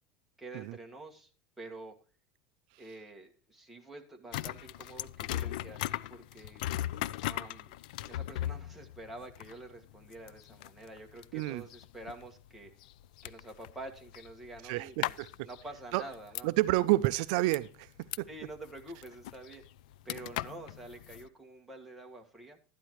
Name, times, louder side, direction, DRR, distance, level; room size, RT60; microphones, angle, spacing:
voice 1, 0.4-1.3 1.6-2.0 2.8-6.6 7.2-7.7 8.1-12.7 13.2-15.2 15.4-16.5 18.3-19.6 20.0-22.6, right 2 dB, 5° right, 1.6 m, -47 dB
sound 1, 4.3-16.7 17.1-21.3, left 14 dB, 80° left, 0.4 m, -38 dB
voice 2, 11.3-11.6 14.6-15.3 15.9-16.0 16.4-17.9 18.2-18.3, right 18 dB, 65° right, 0.4 m, -29 dB
12.5 x 10.0 x 3.1 m
supercardioid pair, 160°, 4 cm